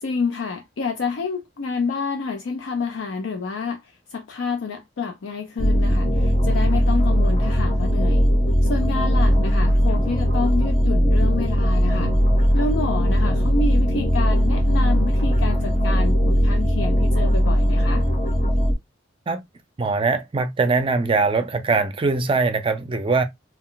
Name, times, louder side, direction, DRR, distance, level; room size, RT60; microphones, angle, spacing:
voice 1, 0.0-3.8 4.1-8.3 8.6-12.1 12.5-18.1, left 4 dB, 85° left, 0.5 m, -28 dB
sound 1, 5.6-18.7, equal, 35° left, 0.8 m, -19 dB
voice 2, 19.8-23.2, right 4 dB, 30° right, 0.4 m, -21 dB
2.4 x 2.1 x 3.7 m
head